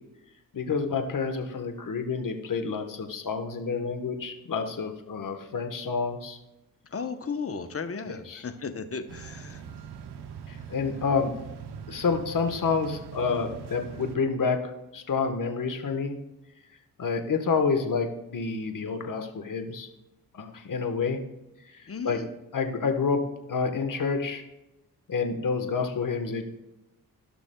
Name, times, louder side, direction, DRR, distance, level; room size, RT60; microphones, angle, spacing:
voice 1, 0.5-6.4 8.1-8.4 10.5-11.3 11.9-16.2 17.0-19.9 20.3-21.2 22.0-22.2 22.5-23.2 23.5-24.4 25.1-26.5, left 5 dB, 55° left, 6 dB, 1.2 m, -28 dB
voice 2, 6.9-9.6 21.9-22.3, left 5 dB, 35° left, 9 dB, 0.9 m, -35 dB
sound 1, 9.1-14.2, right 7 dB, 85° right, 0.7 m, -42 dB
16.0 x 6.0 x 2.3 m, 0.96 s
cardioid pair, 65°, 38 cm